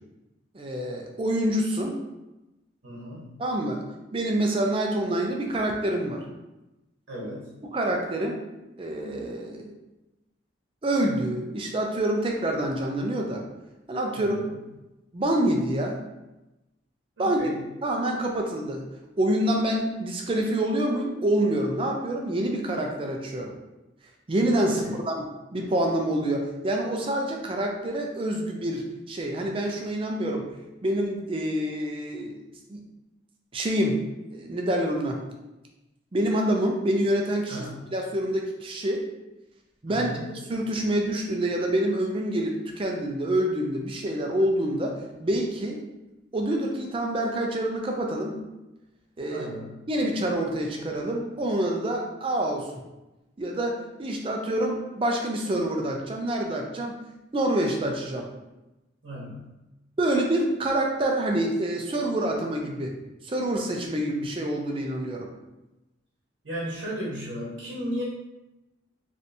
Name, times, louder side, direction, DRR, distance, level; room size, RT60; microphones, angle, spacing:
voice 1, 0.5-2.0 3.4-3.8 4.1-6.2 7.7-8.4 8.8-9.7 10.8-13.4 13.9-14.5 15.1-16.0 17.2-17.5 17.8-18.8 19.2-23.5 24.3-30.5 30.8-32.4 32.7-32.8 33.5-34.0 34.3-35.2 36.1-37.7 37.9-39.1 39.8-40.1 40.4-45.8 46.3-48.4 49.2-49.5 49.9-52.7 53.4-57.0 57.3-58.3 60.0-63.0 63.2-65.3, right 1 dB, 30° right, 1 dB, 0.4 m, -27 dB
voice 2, 2.8-3.4 7.1-7.5 14.2-14.5 17.2-17.6 24.7-25.0 37.5-37.8 39.9-40.3 49.3-49.8 59.0-59.6 66.4-68.0, equal, 80° right, -6 dB, 0.9 m, -35 dB
3.2 x 2.6 x 2.7 m, 1.0 s
head